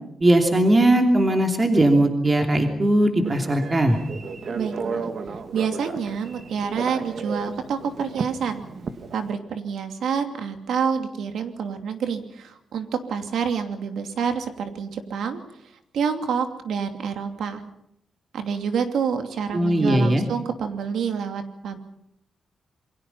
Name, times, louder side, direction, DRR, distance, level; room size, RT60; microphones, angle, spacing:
voice 1, 0.2-4.0 19.5-20.2, right 1 dB, 25° right, 4 dB, 2.9 m, -19 dB
Telephone, 3.2-9.3, right 4 dB, 55° right, 2.1 m, -34 dB
voice 2, 4.5-5.0 5.5-8.6 9.1-15.4 15.9-17.6 18.3-21.8, right 6 dB, 85° right, 6 dB, 2.8 m, -27 dB
28.0 x 23.0 x 5.7 m, 0.71 s
wide cardioid pair, 120°, 0 cm